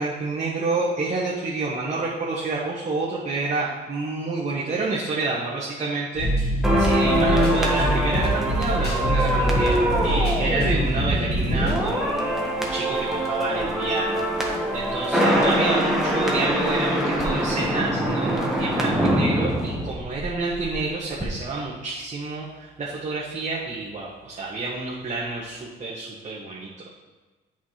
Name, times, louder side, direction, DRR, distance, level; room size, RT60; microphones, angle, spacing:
voice 1, 0.0-26.9, right 3 dB, 35° right, -6 dB, 1.5 m, -29 dB
sound 1, 6.1-11.8, right 1 dB, 55° left, 1.9 m, -25 dB
sound 2, 6.6-20.8 21.0-21.3, equal, ahead, 1.4 m, -24 dB
8.2 x 5.8 x 3.3 m, 1.2 s
cardioid pair, 90°, 20 cm